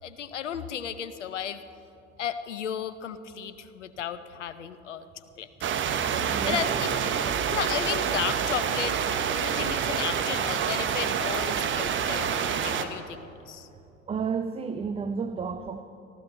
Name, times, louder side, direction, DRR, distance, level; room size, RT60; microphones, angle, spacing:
voice 1, 0.0-1.6 2.2-5.5 6.1-7.0 7.5-9.0 9.3-13.7, left 9 dB, 80° left, 13 dB, 0.8 m, -34 dB
sound 1, 5.6-12.8, right 7 dB, 35° right, 1.1 m, -27 dB
voice 2, 6.3-7.1 14.1-15.8, right 5 dB, 15° right, 8 dB, 0.5 m, -32 dB
19.0 x 14.5 x 4.1 m, 2.7 s
figure-of-eight pair, 70°, 36 cm